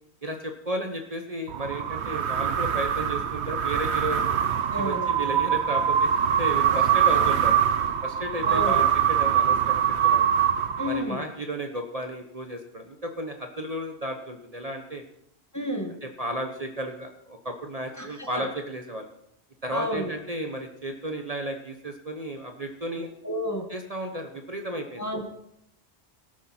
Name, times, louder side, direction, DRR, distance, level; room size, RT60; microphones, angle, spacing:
voice 1, 0.2-4.2 4.8-7.5 8.0-10.2 10.8-15.0 15.6-15.7 16.0-19.1 19.6-23.1 23.7-25.0, right 1 dB, 35° right, 4 dB, 1.2 m, -33 dB
sound 1, 1.5-11.2, right 9 dB, 85° right, 1.1 m, -23 dB
voice 2, 4.7-5.1 6.7-6.8 7.1-7.2 8.4-8.8 10.8-11.2 15.5-15.9 18.0-18.4 19.7-20.1 23.2-23.7 25.0-25.3, equal, 15° left, 3 dB, 1.7 m, -31 dB
17.0 x 12.5 x 4.4 m, 0.75 s
omnidirectional pair, 1.1 m